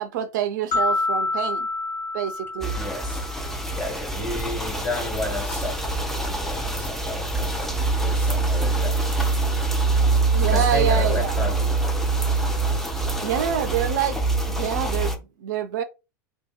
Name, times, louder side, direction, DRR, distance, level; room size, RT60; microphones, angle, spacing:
voice 1, 0.0-1.7 2.1-2.7 10.3-11.4 13.0-14.2 14.5-15.8, right 9 dB, 65° right, 0.4 m, -26 dB
sound 1, 0.7-3.8, left 3 dB, 35° left, 0.9 m, -28 dB
sound 2, 2.6-15.2, right 3 dB, 5° left, 0.5 m, -24 dB
voice 2, 2.7-3.4 3.7-6.1 6.4-9.2 10.4-11.8, left 2 dB, 20° left, 1.2 m, -32 dB
2.7 x 2.1 x 2.4 m
hypercardioid pair, 85°, 11 cm